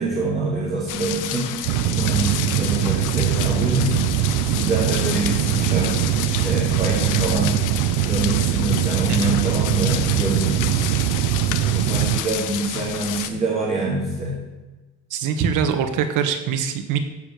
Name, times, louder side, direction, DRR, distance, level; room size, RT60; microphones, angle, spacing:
voice 1, 0.0-4.0 4.4-7.6 8.0-10.9 11.7-14.4, right 2 dB, 20° right, -5 dB, 2.9 m, -26 dB
sound 1, 0.9-13.3, left 11 dB, 70° left, 1.1 m, -30 dB
sound 2, 1.7-12.2, right 13 dB, 90° right, 0.6 m, -22 dB
voice 2, 15.1-17.0, right 7 dB, 70° right, 7 dB, 1.4 m, -23 dB
14.5 x 5.1 x 8.0 m, 1.2 s
cardioid pair, 125°, 32 cm